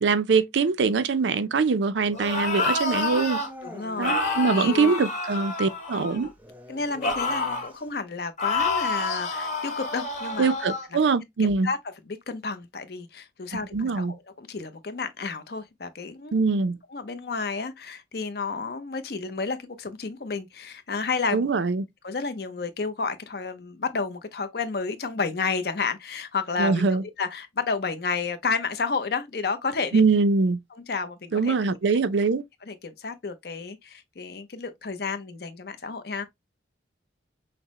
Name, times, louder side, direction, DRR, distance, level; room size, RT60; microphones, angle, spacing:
voice 1, 0.0-3.4 4.0-6.3 10.4-11.7 13.7-14.1 16.3-16.8 21.3-21.8 26.6-27.0 29.9-30.6 31.3-32.4, right 4 dB, 80° right, 0.5 m, -23 dB
sound 1, 2.1-3.5 4.0-6.3 7.0-7.7 8.4-10.9, left 3 dB, 40° left, 1.6 m, -28 dB
Dog / Siren, 2.8-5.0 5.3-5.4 6.4-7.9, equal, 10° right, 0.6 m, -44 dB
voice 2, 3.6-4.2 4.6-4.9 5.9-6.3 6.7-10.5 11.6-11.8 12.1-16.4 16.9-21.5 22.0-30.0 30.7-31.8 32.7-36.2, left 4 dB, 60° left, 0.6 m, -31 dB
5.7 x 2.1 x 3.0 m
head